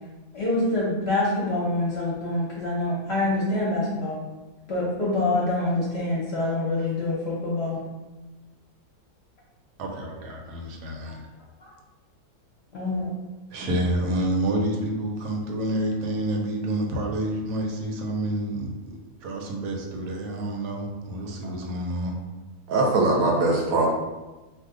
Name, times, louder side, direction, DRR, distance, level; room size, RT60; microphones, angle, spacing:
voice 1, 0.3-4.2 4.7-7.8 11.0-11.1 11.6-11.7 12.7-13.1, left 2 dB, 55° left, -6 dB, 0.8 m, -26 dB
voice 2, 9.8-11.2 13.5-22.2, right 1 dB, 85° right, 1 dB, 1.2 m, -28 dB
voice 3, 22.7-23.9, right 2 dB, 70° right, -1 dB, 0.9 m, -21 dB
2.6 x 2.2 x 3.6 m, 1.2 s
omnidirectional pair, 1.7 m